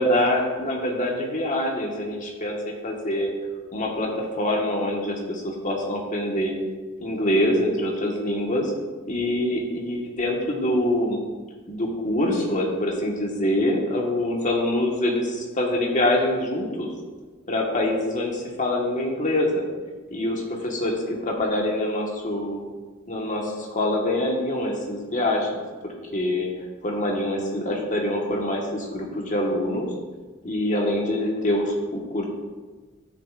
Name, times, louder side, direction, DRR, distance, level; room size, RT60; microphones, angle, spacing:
voice 1, 0.0-3.3 3.7-6.5 7.0-8.7 9.1-11.2 11.7-16.9 17.5-19.6 20.1-22.6 23.1-25.6 26.1-26.5 26.8-29.9 30.4-32.3, left 1 dB, 35° left, -1 dB, 1.4 m, -25 dB
12.5 x 6.9 x 2.5 m, 1.3 s
head